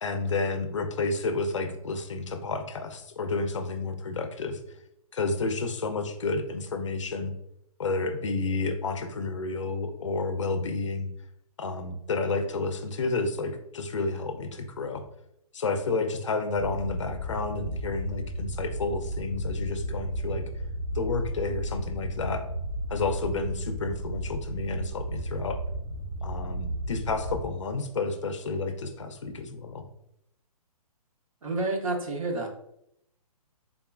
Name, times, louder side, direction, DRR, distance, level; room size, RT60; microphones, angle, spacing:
voice 1, 0.0-4.6 5.1-7.3 7.8-11.1 11.6-15.0 15.5-20.4 20.9-22.4 22.9-25.6 26.2-29.8, left 3 dB, 50° left, 7 dB, 0.5 m, -30 dB
sound 1, 16.6-27.4, right 1 dB, 15° right, 0.7 m, -34 dB
voice 2, 31.4-32.5, right 2 dB, 60° right, 2 dB, 0.9 m, -29 dB
3.6 x 3.5 x 2.3 m, 0.77 s
hypercardioid pair, 175°, 20 cm